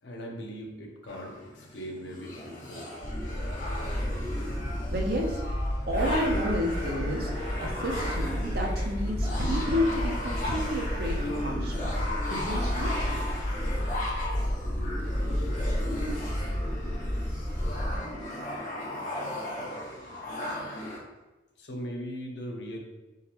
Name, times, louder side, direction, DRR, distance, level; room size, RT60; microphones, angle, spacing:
voice 1, 0.0-2.9 21.6-22.8, equal, 65° left, 1 dB, 0.7 m, -39 dB
sound 1, 1.1-21.0, left 1 dB, 45° left, 1.2 m, -36 dB
sound 2, 3.0-18.0, equal, 10° left, 0.3 m, -31 dB
voice 2, 4.9-13.2, equal, 50° right, 0 dB, 0.7 m, -31 dB
4.0 x 3.8 x 2.9 m, 1.1 s
head